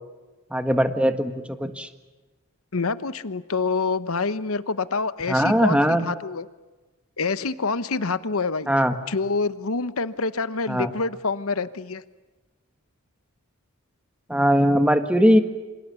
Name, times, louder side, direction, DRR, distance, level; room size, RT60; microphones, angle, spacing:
voice 1, 0.5-1.9 5.3-6.0 8.7-8.9 10.7-10.9 14.3-15.4, equal, 5° right, 8 dB, 1.6 m, -20 dB
voice 2, 2.7-6.5 7.2-8.7 9.1-12.0, left 4 dB, 80° left, 14 dB, 1.0 m, -26 dB
28.0 x 27.0 x 7.0 m, 1.2 s
head